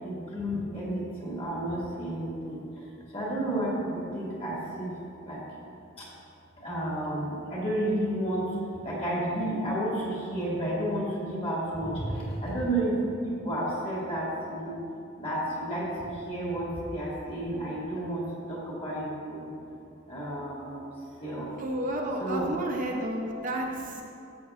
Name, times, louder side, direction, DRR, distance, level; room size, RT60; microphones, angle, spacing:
voice 1, 0.0-2.6 3.1-4.9 5.2-5.4 6.0-6.1 6.6-8.5 8.8-14.8 15.2-18.2 18.5-19.5 20.1-20.9 21.2-21.5 22.2-22.5, right 1 dB, 30° left, -6 dB, 2.1 m, -31 dB
voice 2, 21.6-24.0, right 1 dB, 40° right, 1 dB, 0.6 m, -31 dB
12.5 x 7.6 x 2.5 m, 2.7 s
head